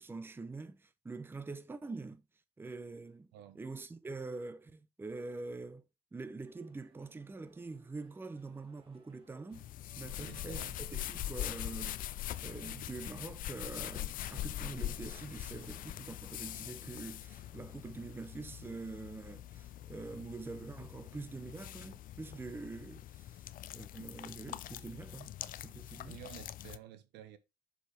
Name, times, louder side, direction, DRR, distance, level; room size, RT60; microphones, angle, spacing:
voice 1, 0.0-2.2 2.6-3.3 3.5-5.9 6.1-9.7 10.0-23.4 23.7-25.3 25.6-26.2, right 3 dB, 15° right, 0.6 m, -45 dB
sound 1, 6.4-22.0, right 3 dB, 30° right, 2.3 m, -68 dB
sound 2, 9.5-26.8, left 13 dB, 55° left, 0.4 m, -43 dB
voice 2, 10.0-11.1 26.0-27.4, right 11 dB, 85° right, 1.0 m, -52 dB
7.1 x 4.7 x 3.3 m
cardioid pair, 110°, 17 cm